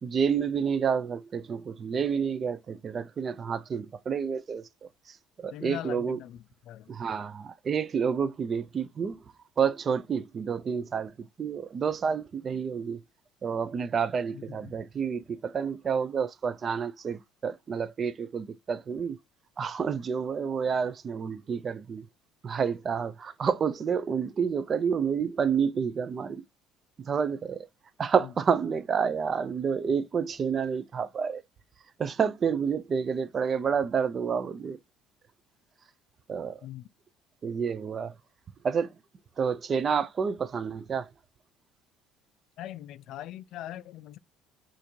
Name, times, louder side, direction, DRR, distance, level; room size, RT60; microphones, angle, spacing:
voice 1, 0.0-4.7 5.1-6.2 6.9-9.2 9.6-11.1 11.4-13.0 13.4-19.2 19.6-22.0 22.4-26.4 27.0-27.7 28.0-31.4 32.0-34.8 36.3-36.6 37.4-38.2 38.6-38.9 39.4-41.1, right 6 dB, 30° right, 0.3 m, -29 dB
voice 2, 5.5-6.9 14.3-14.8 28.2-28.3 36.6-36.9 42.6-44.2, left 12 dB, 60° left, 0.3 m, -41 dB
4.3 x 2.5 x 2.6 m
cardioid pair, 145°, 0 cm